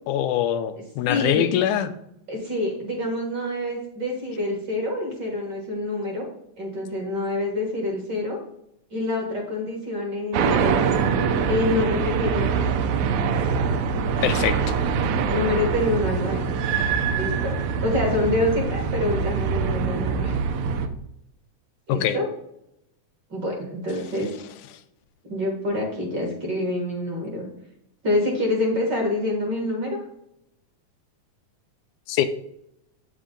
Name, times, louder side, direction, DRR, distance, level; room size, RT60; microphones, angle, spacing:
voice 1, 0.1-1.9 14.2-14.6 21.9-22.2 32.1-32.3, left 11 dB, 85° left, 10 dB, 2.0 m, -23 dB
voice 2, 1.1-1.5 2.3-6.2 6.6-8.4 8.9-10.8 11.5-12.8 15.3-16.4 17.1-17.5 17.8-20.3 21.9-22.3 23.3-24.3 25.2-27.4 28.0-30.0, left 1 dB, 45° right, 0 dB, 1.7 m, -26 dB
sound 1, 10.3-20.9, right 5 dB, 75° right, 1.9 m, -24 dB
8.3 x 5.3 x 3.8 m, 0.79 s
omnidirectional pair, 3.5 m